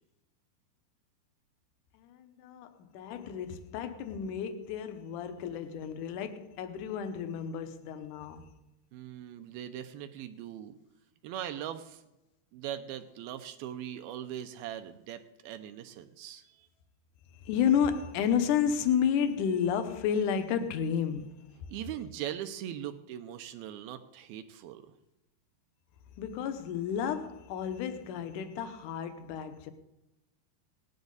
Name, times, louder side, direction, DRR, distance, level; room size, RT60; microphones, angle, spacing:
voice 1, 1.9-8.6 17.4-21.5 26.2-29.7, left 8 dB, 70° left, 2.0 m, -31 dB
voice 2, 8.9-10.8 11.2-12.0 12.5-16.7 21.7-24.9, right 11 dB, 80° right, 2.4 m, -40 dB
19.0 x 10.5 x 4.0 m
omnidirectional pair, 4.7 m